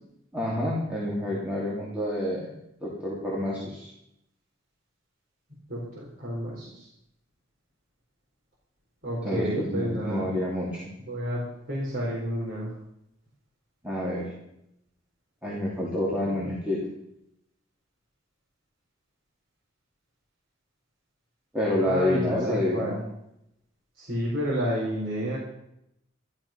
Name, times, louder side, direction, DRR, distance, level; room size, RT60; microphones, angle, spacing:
voice 1, 0.3-3.9 9.2-10.9 13.8-14.3 15.4-16.8 21.5-23.0, left 1 dB, 5° right, -6 dB, 3.0 m, -28 dB
voice 2, 5.7-6.9 9.0-10.3 11.1-11.4 11.7-12.7 21.8-22.9 24.0-25.4, equal, 50° right, -6 dB, 4.4 m, -30 dB
13.5 x 13.0 x 5.9 m, 0.81 s
head